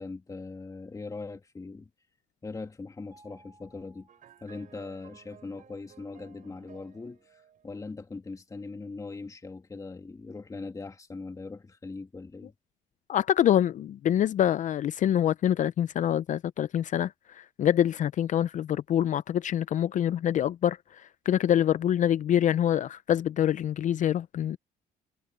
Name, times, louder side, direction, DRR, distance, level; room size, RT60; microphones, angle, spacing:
voice 1, 0.0-1.9 2.4-4.1 4.4-12.5, left 3 dB, 20° left, 2.4 m, -41 dB
Mallet percussion, 3.1-5.1, right 2 dB, 20° right, 3.8 m, -60 dB
sound 1, 4.1-7.8, right 9 dB, 50° right, 4.5 m, -56 dB
voice 2, 13.1-24.6, left 10 dB, 50° left, 0.5 m, -25 dB
cardioid pair, 110°, 17 cm